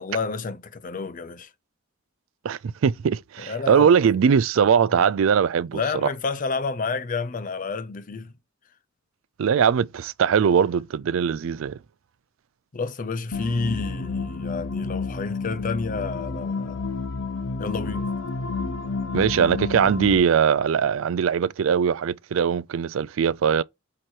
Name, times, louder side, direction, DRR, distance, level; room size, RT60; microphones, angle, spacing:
voice 1, 0.0-1.5 3.5-4.0 5.7-8.3 12.7-16.8 17.6-18.1, left 4 dB, 40° left, 0.6 m, -30 dB
voice 2, 2.4-6.1 9.4-11.8 19.1-23.6, right 7 dB, 70° right, 0.4 m, -21 dB
sound 1, 13.3-20.2, left 4 dB, 70° left, 0.9 m, -30 dB
7.8 x 3.0 x 4.4 m
head